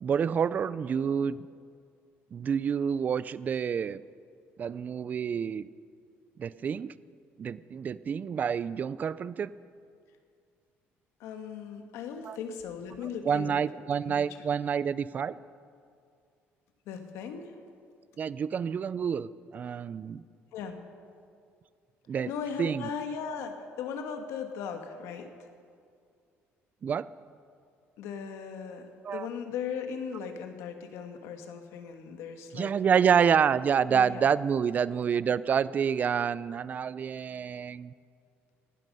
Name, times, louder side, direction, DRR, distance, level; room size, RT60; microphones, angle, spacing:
voice 1, 0.0-1.4 2.3-4.0 4.6-5.7 6.4-6.9 7.4-9.5 12.2-12.4 13.3-15.4 18.2-20.2 22.1-22.3 22.6-22.9 26.8-27.1 29.0-29.3 32.5-37.9, right 7 dB, 35° right, 18 dB, 0.4 m, -28 dB
voice 2, 11.2-13.6 14.1-14.4 16.8-17.6 20.5-20.7 22.2-25.5 28.0-32.7 33.8-34.2, left 6 dB, 85° left, 6 dB, 1.6 m, -38 dB
18.5 x 12.0 x 5.4 m, 2.3 s
cardioid pair, 125°, 5 cm